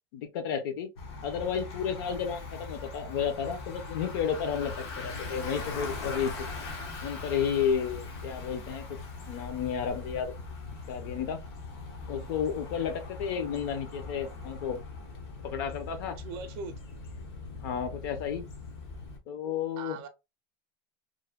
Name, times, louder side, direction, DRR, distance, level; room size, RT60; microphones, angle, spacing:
voice 1, 0.1-0.9 1.2-6.5 7.0-8.8 9.3-10.3 10.9-11.4 12.1-14.8 15.4-16.2 17.6-18.5 19.3-20.0, left 7 dB, 60° left, 0.6 m, -32 dB
Bicycle, 1.0-19.2, left 3 dB, 85° left, 0.9 m, -41 dB
voice 2, 16.2-16.7 19.8-20.1, right 5 dB, 40° right, 0.4 m, -40 dB
3.0 x 2.1 x 2.2 m
supercardioid pair, 180°, 13 cm